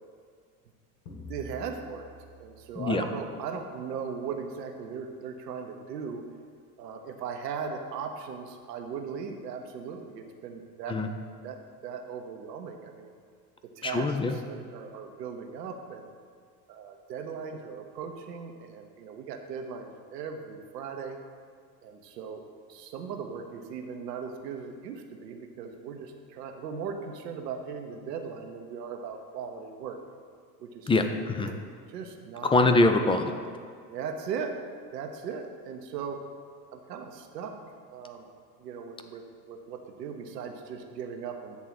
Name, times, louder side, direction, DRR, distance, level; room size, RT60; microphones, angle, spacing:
sound 1, 1.1-3.8, equal, 75° left, 1.5 m, -48 dB
voice 1, 1.3-2.1 2.4-6.2 6.8-11.0 11.4-13.1 13.8-16.1 16.7-21.2 21.8-22.4 22.7-30.0 30.6-31.0 31.4-31.6 31.9-32.5 33.9-34.5 34.9-36.2 36.7-37.6 37.9-38.3 38.6-41.6, right 6 dB, 85° right, 4 dB, 0.9 m, -38 dB
voice 2, 13.8-14.3 30.9-31.5 32.4-33.3, left 2 dB, 10° left, 6 dB, 0.4 m, -23 dB
8.3 x 3.6 x 6.0 m, 2.1 s
hypercardioid pair, 75°, 48 cm